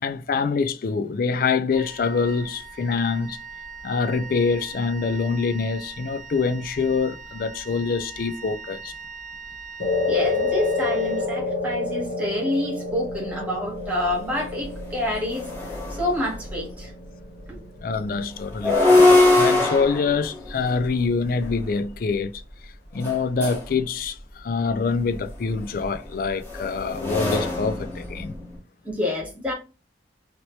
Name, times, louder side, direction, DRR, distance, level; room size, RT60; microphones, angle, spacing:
voice 1, 0.0-3.4 3.8-8.9 17.8-22.4 22.9-28.3, left 4 dB, 50° left, 0.3 m, -25 dB
Wind instrument woodwind instrument, 1.7-11.8, right 4 dB, 40° right, 0.9 m, -41 dB
sound 1, 9.8-18.3, left 3 dB, 80° left, 0.9 m, -29 dB
voice 2, 10.1-16.9 17.5-17.6 28.8-29.5, left 1 dB, 10° right, 1.3 m, -28 dB
sound 2, 14.1-14.2 14.6-16.6 18.4-21.7 23.0-23.7 25.1-28.6, left 2 dB, 15° left, 1.1 m, -22 dB
2.9 x 2.8 x 3.0 m
head